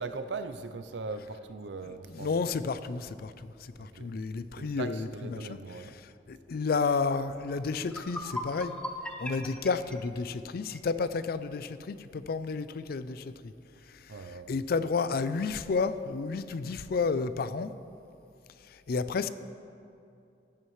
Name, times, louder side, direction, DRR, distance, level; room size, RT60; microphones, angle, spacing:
voice 1, 0.0-2.3 3.8-4.1 4.5-6.0 14.1-14.5, right 4 dB, 90° right, 9 dB, 0.6 m, -39 dB
voice 2, 1.9-8.8 9.2-13.5 13.9-17.7 18.6-19.3, left 4 dB, 60° left, 13 dB, 0.4 m, -32 dB
sound 1, 7.4-7.5 7.8-10.9, left 1 dB, 5° left, 0.7 m, -39 dB
15.5 x 9.6 x 3.2 m, 2.6 s
head